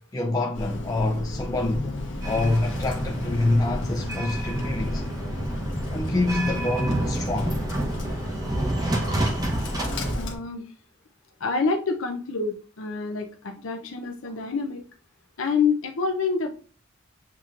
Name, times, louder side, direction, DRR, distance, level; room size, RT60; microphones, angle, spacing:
voice 1, 0.1-5.1 5.9-7.6, left 2 dB, 20° left, 0.4 m, -26 dB
Bird, 0.5-10.3, left 1 dB, 60° left, 1.1 m, -33 dB
sound 1, 2.2-10.1, right 1 dB, 20° right, 0.8 m, -29 dB
voice 2, 10.1-10.7 11.4-14.8 15.4-16.5, left 5 dB, 75° left, 0.6 m, -27 dB
7.4 x 2.9 x 2.4 m
head